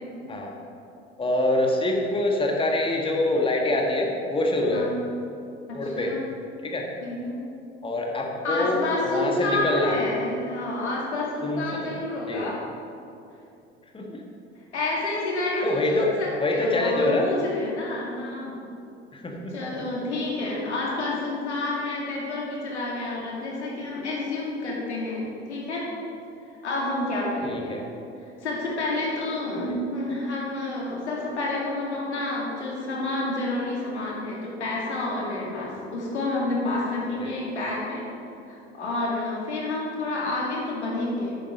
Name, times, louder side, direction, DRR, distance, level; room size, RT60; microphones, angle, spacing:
voice 1, 1.2-4.9 5.7-6.1 6.6-6.9 7.8-10.0 11.4-12.0 12.3-12.5 13.9-14.2 15.6-16.1 16.4-17.3 19.1-19.6 27.4-27.8 29.7-29.8 37.2-37.3, left 2 dB, 15° left, 0 dB, 1.5 m, -25 dB
voice 2, 4.7-5.0 5.7-6.2 7.0-7.5 8.4-12.6 14.7-18.7 19.5-25.9 26.6-27.8 28.4-38.1 38.5-41.4, left 2 dB, 80° left, -4 dB, 2.4 m, -29 dB
9.9 x 9.1 x 5.2 m, 2.6 s
figure-of-eight pair, 65°, 34 cm